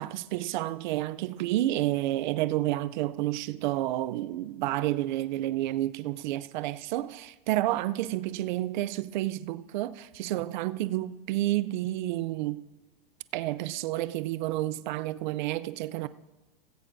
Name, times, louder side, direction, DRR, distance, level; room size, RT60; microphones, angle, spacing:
voice 1, 0.0-12.6 13.3-16.1, right 15 dB, 50° right, 0.5 m, -30 dB
16.0 x 15.0 x 2.7 m
supercardioid pair, 145°, 30 cm